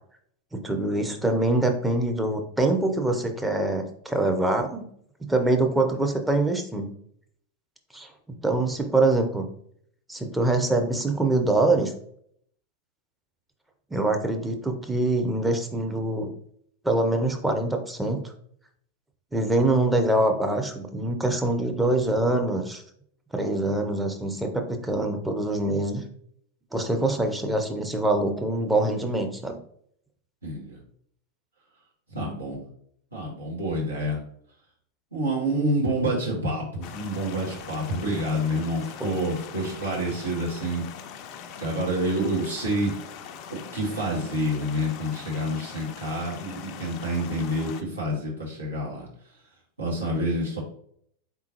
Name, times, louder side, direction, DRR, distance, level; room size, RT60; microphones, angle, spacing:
voice 1, 0.5-4.9 5.2-6.9 7.9-8.1 8.4-9.4 10.1-11.9 13.9-16.3 16.8-18.3 19.3-22.8 23.3-26.0 26.7-29.6 39.1-39.2, right 2 dB, 5° right, 4 dB, 0.7 m, -24 dB
voice 2, 30.4-30.8 32.1-32.6 33.1-34.2 35.1-40.8 41.6-43.0 43.5-49.1 49.8-50.6, right 1 dB, 80° right, -5 dB, 1.7 m, -28 dB
sound 1, 36.8-47.8, left 8 dB, 40° left, 0.4 m, -42 dB
4.2 x 3.7 x 2.8 m, 0.65 s
figure-of-eight pair, 90°, 0 cm